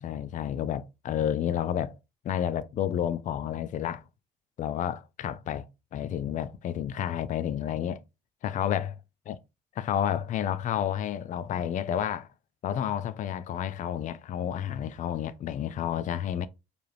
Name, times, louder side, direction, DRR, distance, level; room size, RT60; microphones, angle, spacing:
voice 1, 0.0-2.0 2.2-4.0 4.6-8.0 8.4-9.0 9.3-9.4 9.8-12.3 12.6-16.5, left 10 dB, 50° left, 0.5 m, -30 dB
4.8 x 3.3 x 3.0 m
cardioid pair, 110°, 17 cm